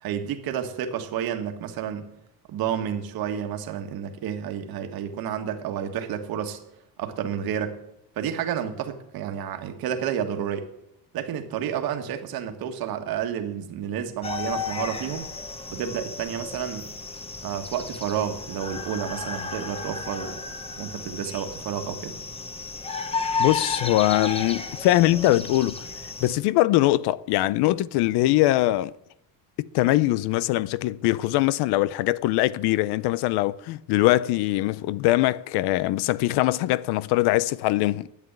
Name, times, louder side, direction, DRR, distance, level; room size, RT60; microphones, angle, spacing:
voice 1, 0.0-2.1 2.5-6.6 7.0-7.8 8.2-10.7 11.1-15.3 15.7-16.9 17.4-20.4 20.8-22.1, right 9 dB, 65° right, 1.7 m, -30 dB
sound 1, 14.2-26.4, left 4 dB, 15° left, 1.1 m, -33 dB
voice 2, 23.4-25.9 26.2-28.9 29.6-38.1, left 16 dB, 90° left, 0.6 m, -22 dB
11.0 x 8.3 x 8.8 m
cardioid pair, 135°, 38 cm